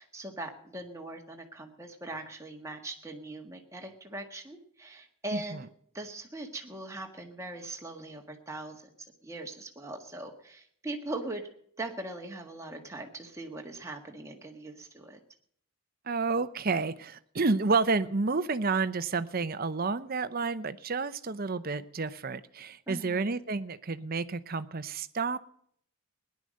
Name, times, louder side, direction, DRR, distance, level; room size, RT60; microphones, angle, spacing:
voice 1, 0.0-5.7 5.9-8.8 9.2-11.4 11.8-15.2 22.9-23.4, right 2 dB, 15° right, 2 dB, 1.7 m, -41 dB
voice 2, 16.1-25.4, right 4 dB, 40° right, 13 dB, 0.7 m, -30 dB
18.0 x 11.0 x 6.4 m, 0.65 s
head